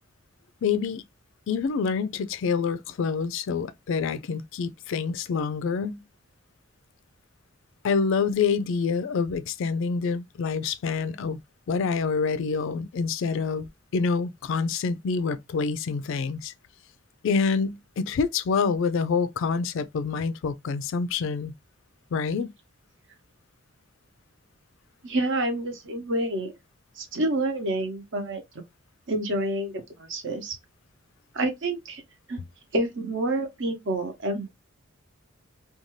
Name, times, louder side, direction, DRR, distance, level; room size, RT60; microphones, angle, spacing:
voice 1, 0.6-1.0 1.5-6.0 7.8-11.4 11.7-13.7 13.9-16.5 17.2-21.5 22.1-22.5, left 5 dB, 60° left, 0.3 m, -27 dB
voice 2, 25.0-26.5 27.0-28.4 29.1-30.6 31.3-32.0 32.3-32.4 32.7-34.5, right 1 dB, 60° right, 0.8 m, -28 dB
2.6 x 2.3 x 3.0 m
head